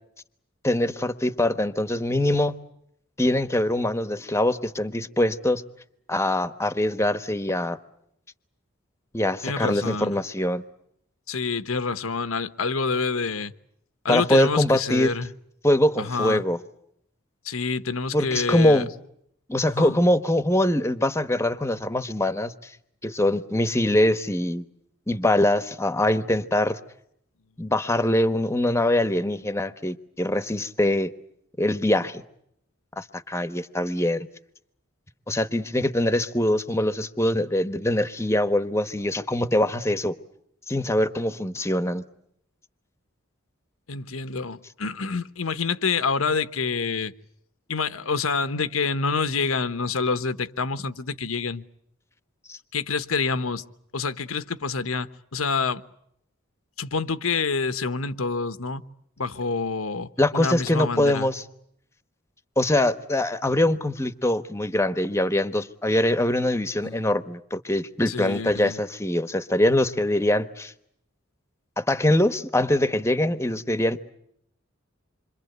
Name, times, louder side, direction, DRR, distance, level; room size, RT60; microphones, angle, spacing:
voice 1, 0.6-2.6 3.2-5.6 6.1-7.8 9.1-10.6 14.1-15.1 15.6-16.6 18.1-18.9 19.5-22.7 23.0-24.6 25.1-26.8 27.6-31.1 31.6-32.2 33.0-34.3 35.3-40.1 40.7-42.0 52.5-52.6 60.2-61.4 62.6-70.7 71.8-74.0, left 1 dB, 15° left, 1.1 m, -23 dB
voice 2, 9.4-10.2 11.3-13.5 14.0-15.3 16.0-16.4 17.4-18.8 19.7-20.0 43.9-47.1 47.7-51.6 52.7-53.6 53.9-55.8 56.8-58.8 59.2-61.3 66.8-67.0 68.1-68.8, left 4 dB, 90° left, 1.2 m, -27 dB
27.5 x 25.0 x 8.1 m
head